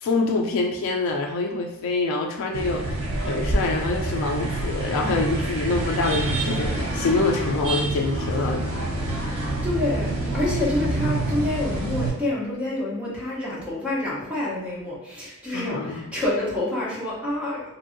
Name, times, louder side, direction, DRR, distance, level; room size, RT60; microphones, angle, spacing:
voice 1, 0.0-8.7 15.5-16.0, left 3 dB, 65° left, 1 dB, 0.3 m, -26 dB
sound 1, 2.5-12.1, right 2 dB, 65° right, 0.8 m, -27 dB
voice 2, 9.3-17.6, left 1 dB, 5° right, -7 dB, 0.8 m, -28 dB
2.6 x 2.6 x 2.5 m, 0.98 s
head